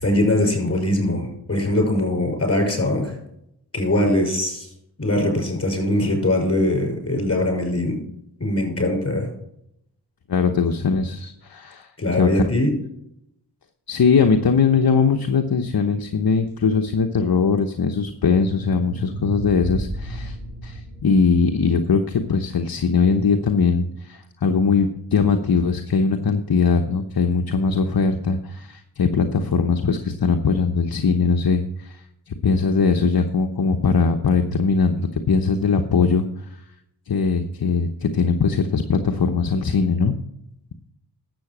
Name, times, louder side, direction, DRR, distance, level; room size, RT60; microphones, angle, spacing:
voice 1, 0.0-3.2 3.7-4.7 5.0-8.0 8.4-9.3 12.0-12.7, left 1 dB, 35° left, 1 dB, 6.0 m, -21 dB
voice 2, 10.3-12.4 13.9-20.4 20.6-36.2 37.1-40.1, left 5 dB, 60° left, 4 dB, 1.0 m, -20 dB
sound 1, 18.0-23.0, right 1 dB, 15° right, 4.2 m, -34 dB
12.0 x 7.9 x 6.1 m, 0.78 s
cardioid pair, 60°, 40 cm